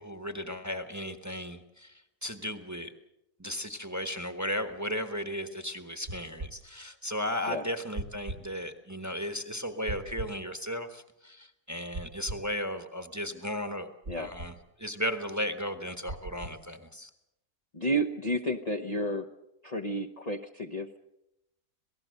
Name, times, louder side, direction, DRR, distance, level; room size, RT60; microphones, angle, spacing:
voice 1, 0.0-2.9 3.4-13.9 14.2-17.1, equal, 10° right, 7 dB, 1.2 m, -35 dB
sound 1, 6.1-6.5 8.0-8.4 9.9-10.4 11.9-12.5 14.0-14.5 16.1-16.6, right 2 dB, 45° right, 1.6 m, -39 dB
voice 2, 17.7-19.3 19.6-21.0, right 1 dB, 30° left, 3 dB, 0.9 m, -31 dB
26.5 x 18.0 x 6.6 m, 0.86 s
omnidirectional pair, 1.6 m